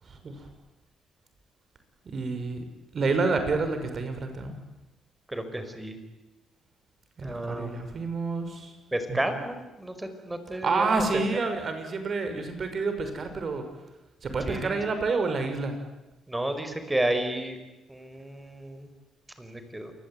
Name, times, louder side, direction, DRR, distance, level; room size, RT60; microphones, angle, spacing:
voice 1, 0.0-0.5 2.0-2.7 2.9-4.6 7.2-8.7 9.1-9.2 10.6-13.7 14.2-15.8, right 4 dB, 45° right, 7 dB, 6.2 m, -29 dB
voice 2, 5.3-6.0 7.2-8.0 8.9-11.0 14.4-14.7 16.3-17.6 17.9-18.9 19.4-19.9, right 1 dB, 10° right, 8 dB, 5.2 m, -32 dB
28.0 x 21.0 x 9.4 m, 1.0 s
cardioid pair, 90°, 0 cm